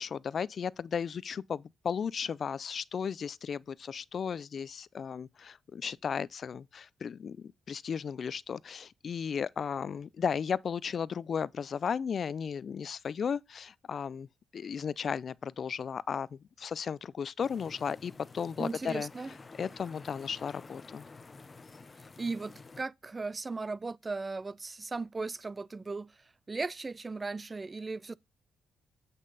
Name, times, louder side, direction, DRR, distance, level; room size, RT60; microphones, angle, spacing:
voice 1, 0.0-14.3 14.5-19.1 19.6-21.0, left 7 dB, 45° left, 0.4 m, -35 dB
sound 1, 17.4-22.8, left 3 dB, 25° left, 0.8 m, -51 dB
voice 2, 18.6-19.3 22.0-28.2, right 3 dB, 25° right, 0.3 m, -37 dB
8.4 x 5.4 x 4.0 m
cardioid pair, 125°, 0 cm